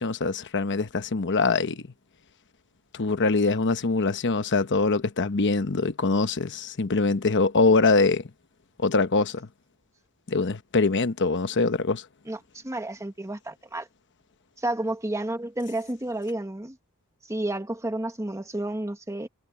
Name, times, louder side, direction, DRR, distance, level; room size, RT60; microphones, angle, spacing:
voice 1, 0.0-1.8 2.9-8.2 8.8-9.5 10.3-12.0, left 3 dB, 55° left, 1.0 m, -23 dB
voice 2, 12.3-13.9 14.6-16.8 17.3-19.3, right 1 dB, 15° right, 1.3 m, -31 dB
head